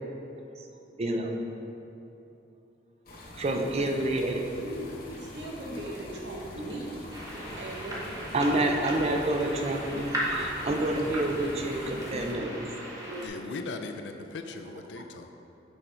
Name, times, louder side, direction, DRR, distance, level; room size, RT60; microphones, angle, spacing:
voice 1, 1.0-1.3 3.4-4.4 7.4-7.6 7.9-8.0 8.3-12.5 13.0-13.1 15.0-15.1, right 1 dB, 35° right, 0.5 m, -28 dB
sound 1, 3.1-12.3, left 1 dB, 55° left, 0.9 m, -45 dB
voice 2, 3.7-7.0 7.6-9.1 10.6-12.7 13.0-13.4, right 1 dB, 75° right, 0.9 m, -40 dB
sound 2, 7.1-13.3, equal, 20° right, 0.9 m, -37 dB
voice 3, 13.2-15.3, left 3 dB, 75° left, 0.4 m, -38 dB
6.2 x 4.4 x 3.4 m
head